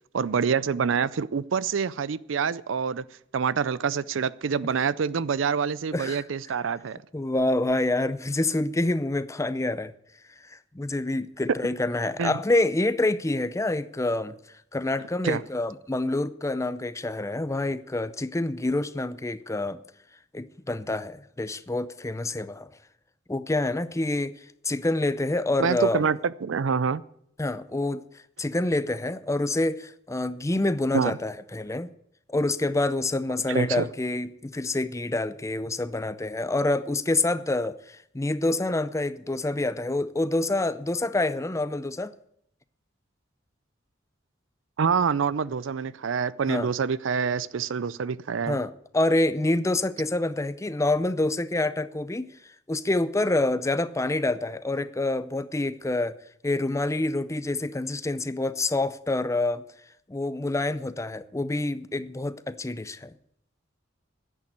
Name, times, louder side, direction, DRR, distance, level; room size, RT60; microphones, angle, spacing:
voice 1, 0.1-3.0 3.3-7.0 12.2-12.4 15.2-15.4 25.6-27.0 30.9-31.2 33.5-33.9 44.8-48.6, right 6 dB, 75° right, 0.5 m, -26 dB
voice 2, 5.9-6.2 7.1-9.9 10.4-14.4 14.7-19.8 20.3-22.7 23.3-24.3 24.6-26.0 27.4-28.0 28.4-31.9 32.3-42.1 46.5-46.7 48.5-52.3 52.7-56.2 56.4-59.6 60.1-63.2, left 2 dB, 15° left, 0.5 m, -27 dB
10.5 x 8.9 x 9.4 m
head